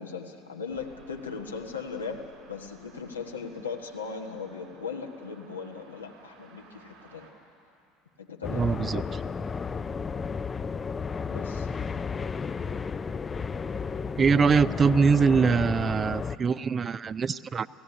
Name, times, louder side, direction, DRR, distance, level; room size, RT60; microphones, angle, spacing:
voice 1, 0.0-7.3 8.2-9.3 11.3-11.7, left 5 dB, 90° left, 2 dB, 1.3 m, -38 dB
sound 1, 0.7-7.3, right 4 dB, 70° right, 3.9 m, -56 dB
sound 2, 8.4-16.4, left 5 dB, 25° left, 0.5 m, -33 dB
voice 2, 8.5-9.0 14.2-17.7, right 5 dB, 30° right, 16 dB, 0.5 m, -23 dB
17.0 x 16.0 x 9.8 m, 2.6 s
hypercardioid pair, 70°, 0 cm